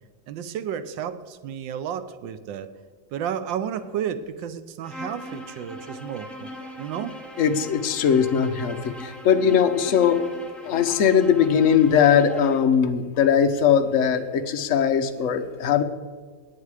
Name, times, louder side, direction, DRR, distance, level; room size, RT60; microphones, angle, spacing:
voice 1, 0.3-2.7 3.1-6.5 6.8-7.2, right 9 dB, 80° right, 12 dB, 1.4 m, -32 dB
Bowed string instrument, 4.8-12.7, equal, ahead, 0.9 m, -40 dB
voice 2, 7.4-10.2 10.6-15.8, left 7 dB, 55° left, 7 dB, 0.9 m, -20 dB
18.5 x 8.6 x 4.8 m, 1.5 s
omnidirectional pair, 2.1 m